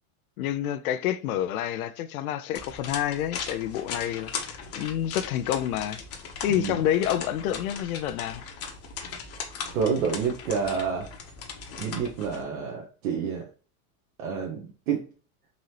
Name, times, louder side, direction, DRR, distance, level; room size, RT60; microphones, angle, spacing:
voice 1, 0.4-6.0 6.4-8.5, left 11 dB, 85° left, 0.5 m, -28 dB
sound 1, 2.5-12.4, left 6 dB, 35° left, 0.9 m, -38 dB
voice 2, 9.7-11.1 11.8-13.4 14.2-15.0, right 6 dB, 75° right, 1.0 m, -28 dB
3.9 x 2.8 x 3.1 m
hypercardioid pair, 110°, 42 cm